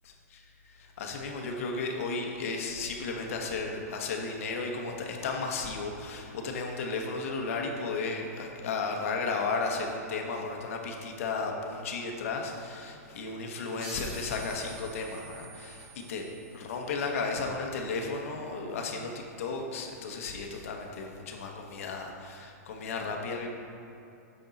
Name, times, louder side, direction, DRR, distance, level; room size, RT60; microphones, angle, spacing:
voice 1, 0.0-0.4 0.8-16.3 16.5-23.5, left 4 dB, 55° left, 1 dB, 1.0 m, -34 dB
sound 1, 13.8-17.0, right 3 dB, 20° right, 1.6 m, -47 dB
6.5 x 6.2 x 4.1 m, 2.7 s
supercardioid pair, 170°, 9 cm